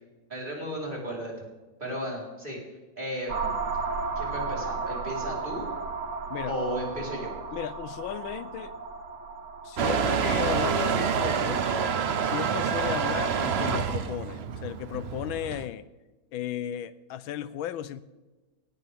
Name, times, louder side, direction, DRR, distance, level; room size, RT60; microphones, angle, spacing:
voice 1, 0.3-1.3 1.8-2.6 3.0-3.5 4.2-5.7 6.5-7.3, equal, 25° right, -4 dB, 4.4 m, -34 dB
sound 1, 3.3-10.9, right 4 dB, 50° right, 1.1 m, -34 dB
voice 2, 7.5-8.7 9.6-15.9 16.3-18.0, left 11 dB, 90° left, 15 dB, 1.4 m, -35 dB
Motor vehicle (road) / Engine starting / Accelerating revving vroom, 9.8-15.7, right 6 dB, 80° right, 0.5 m, -27 dB
18.0 x 17.0 x 3.6 m, 1.2 s
omnidirectional pair, 2.1 m